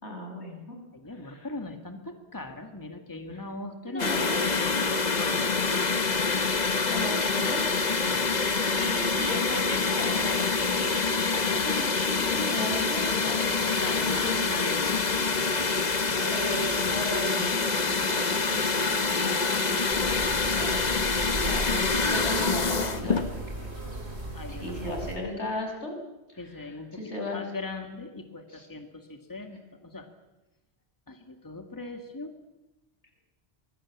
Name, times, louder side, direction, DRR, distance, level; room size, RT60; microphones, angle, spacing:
voice 1, 0.0-0.8 1.1-1.5 3.3-3.4 3.9-4.4 6.9-7.7 8.7-14.4 16.3-23.8 24.5-25.9 26.3-27.5 28.5-28.7, left 1 dB, 80° left, 3 dB, 6.2 m, -36 dB
voice 2, 0.9-5.9 8.0-9.2 13.5-16.6 24.3-24.7 25.0-25.4 26.4-26.9 27.2-30.1 31.1-32.3, left 2 dB, 15° left, 5 dB, 2.0 m, -40 dB
sound 1, 4.0-23.3, left 4 dB, 40° left, 1.2 m, -26 dB
sound 2, 19.9-25.2, right 1 dB, 70° right, 5.0 m, -37 dB
24.0 x 22.5 x 8.6 m, 1.0 s
omnidirectional pair, 1.1 m